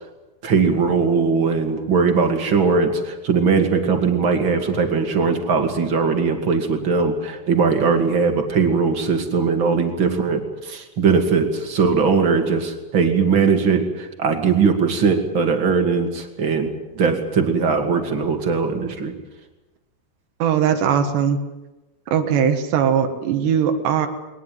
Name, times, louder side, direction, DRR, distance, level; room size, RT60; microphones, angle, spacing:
voice 1, 0.4-19.1, right 5 dB, 35° right, 6 dB, 2.5 m, -20 dB
voice 2, 20.4-21.4 22.1-24.1, right 8 dB, 85° right, 6 dB, 3.7 m, -19 dB
22.0 x 20.0 x 9.4 m, 1.1 s
omnidirectional pair, 4.8 m